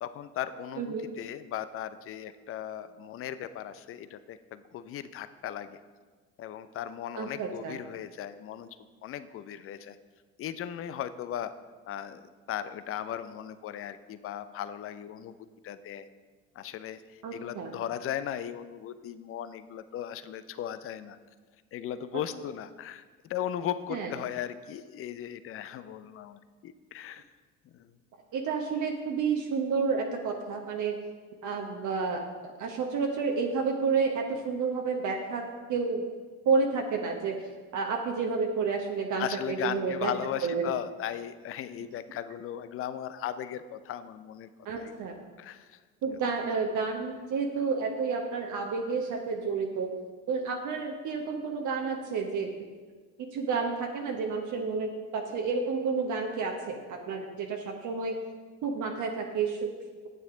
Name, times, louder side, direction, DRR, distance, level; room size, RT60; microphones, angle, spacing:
voice 1, 0.0-5.8 6.4-8.8 9.0-10.0 10.4-11.5 11.9-15.3 15.6-16.1 16.6-21.2 21.7-27.2 27.6-27.9 39.2-44.5 44.8-44.9 45.4-45.8, left 10 dB, 30° left, 13 dB, 0.6 m, -37 dB
voice 2, 0.8-1.1 7.2-7.8 17.2-17.7 23.9-24.1 28.3-31.0 31.4-36.0 36.4-40.1 40.4-40.6 44.6-45.2 46.0-49.9 50.3-52.5 53.3-58.2 58.6-59.7, right 5 dB, 45° right, 2 dB, 1.2 m, -30 dB
11.5 x 9.1 x 3.7 m, 1.4 s
figure-of-eight pair, 60°, 44 cm